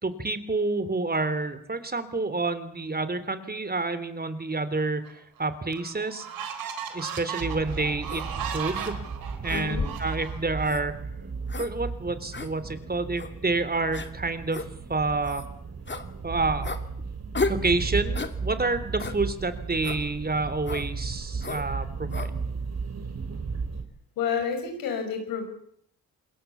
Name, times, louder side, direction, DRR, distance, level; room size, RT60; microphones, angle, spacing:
voice 1, 0.0-6.3 6.9-9.0 9.4-10.9 11.6-14.6 14.9-15.4 16.2-16.7 17.5-22.1, right 3 dB, 25° right, 12 dB, 3.5 m, -28 dB
sound 1, 5.1-5.2 5.7-10.7, right 8 dB, 80° right, 4.0 m, -36 dB
sound 2, 7.4-23.8, right 4 dB, 50° right, 3.4 m, -35 dB
sound 3, 8.1-8.3 8.7-8.9 9.5-10.1 10.6-10.8 11.5-11.7 12.3-12.5 13.2-13.3 13.9-14.1 14.5-14.7 15.2-15.5 15.9-16.1 16.6-16.8 17.3-17.6 18.1-18.4 19.0-19.2 19.8-20.0 20.6-20.9 21.4-21.7 22.1-22.3, left 4 dB, 30° left, 2.5 m, -33 dB
voice 2, 9.5-9.9 24.2-25.4, left 6 dB, 90° left, 5 dB, 6.1 m, -29 dB
28.0 x 21.0 x 7.2 m, 0.67 s
supercardioid pair, 60°, 34 cm